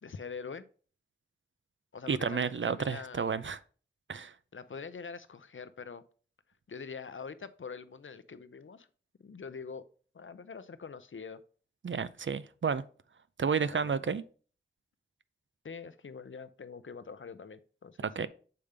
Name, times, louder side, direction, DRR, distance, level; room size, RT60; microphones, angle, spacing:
voice 1, 0.0-0.7 1.9-3.3 4.5-6.0 6.7-8.9 9.2-9.9 10.1-11.4 13.6-14.2 15.6-18.1, left 5 dB, 75° left, 0.5 m, -44 dB
voice 2, 2.1-3.6 4.1-4.3 11.8-12.8 13.4-14.2 18.0-18.3, right 6 dB, 70° right, 0.5 m, -31 dB
6.8 x 5.1 x 3.3 m
wide cardioid pair, 55°, 20 cm